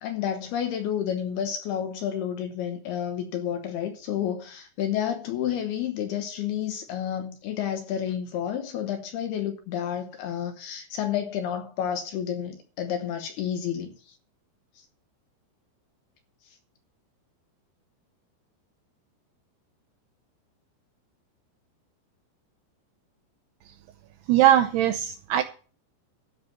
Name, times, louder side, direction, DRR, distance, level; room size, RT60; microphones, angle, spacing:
voice 1, 0.0-14.2, left 9 dB, 70° left, 2.6 m, -30 dB
voice 2, 24.3-25.4, right 11 dB, 80° right, 2.4 m, -20 dB
13.0 x 5.6 x 7.5 m
omnidirectional pair, 5.4 m